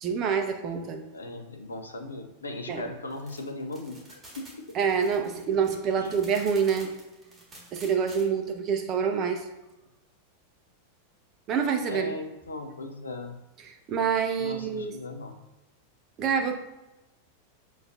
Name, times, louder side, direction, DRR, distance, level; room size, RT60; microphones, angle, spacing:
voice 1, 0.0-1.0 2.7-2.8 4.7-6.9 7.7-9.4 11.5-12.2 13.6-14.9 16.2-16.6, right 6 dB, 35° right, 4 dB, 0.5 m, -26 dB
voice 2, 1.1-4.7 6.0-6.2 11.9-13.4 14.4-15.4, left 2 dB, 75° left, 5 dB, 0.4 m, -38 dB
sound 1, 3.1-8.2, right 1 dB, 15° right, 1.5 m, -49 dB
6.2 x 3.0 x 2.5 m, 0.98 s
figure-of-eight pair, 90°, 0 cm